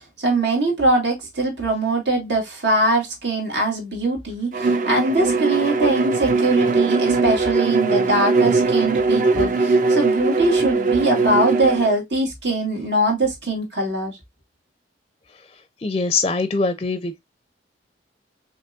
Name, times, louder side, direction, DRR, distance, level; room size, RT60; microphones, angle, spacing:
voice 1, 0.2-14.2, right 2 dB, 80° right, 2.0 m, -22 dB
Bowed string instrument, 4.5-11.9, right 3 dB, 45° right, 0.5 m, -20 dB
voice 2, 15.8-17.2, left 3 dB, 30° left, 0.4 m, -22 dB
5.1 x 3.0 x 2.4 m
head